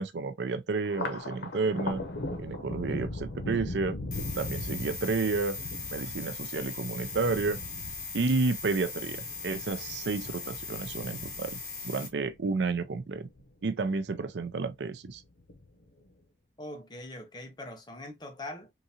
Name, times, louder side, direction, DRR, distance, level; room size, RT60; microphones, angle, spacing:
voice 1, 0.0-2.0 2.4-4.0 4.4-5.6 5.9-7.6 8.1-13.3 13.6-15.2, right 4 dB, 75° right, 0.5 m, -31 dB
Thunder, 0.8-13.5 13.9-14.7 15.0-15.9, left 2 dB, 90° left, 0.9 m, -40 dB
sound 1, 4.1-12.1, left 4 dB, 50° left, 1.9 m, -39 dB
voice 2, 16.6-18.7, left 1 dB, 25° left, 0.8 m, -42 dB
3.7 x 2.6 x 2.7 m
head